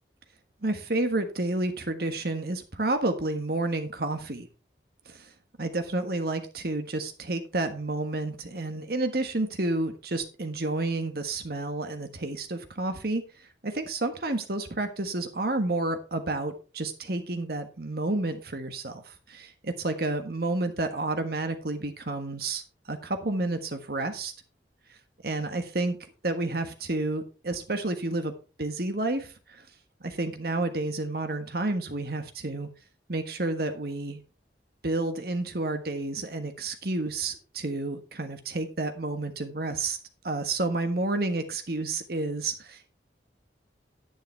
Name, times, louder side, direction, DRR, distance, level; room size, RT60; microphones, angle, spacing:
voice 1, 0.6-4.5 5.1-5.3 5.6-13.2 13.6-22.6 22.9-24.3 25.2-26.0 26.2-28.3 28.6-29.6 30.0-32.7 33.1-34.2 34.8-40.0 40.2-42.9, right 2 dB, 60° right, 7 dB, 1.4 m, -30 dB
10.5 x 8.9 x 3.4 m, 0.34 s
head